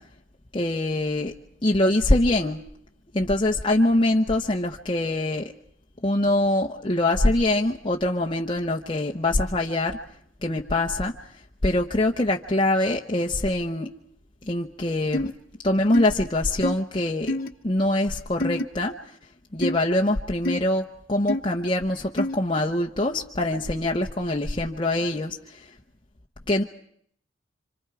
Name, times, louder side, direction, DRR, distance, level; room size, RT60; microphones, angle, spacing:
voice 1, 0.5-1.3 1.6-2.6 3.1-5.5 6.0-10.0 10.4-11.1 11.6-13.9 14.5-15.3 15.6-17.4 17.6-19.0 19.5-25.6 26.5-26.6, left 1 dB, 25° left, 0 dB, 0.8 m, -24 dB
sound 1, 15.1-15.3 15.9-16.1 16.6-16.8 17.3-17.5 18.4-18.6 19.6-19.8 20.4-20.6 21.3-21.4 22.2-22.4, left 1 dB, 45° left, 1.1 m, -26 dB
28.0 x 26.0 x 4.8 m, 0.66 s
head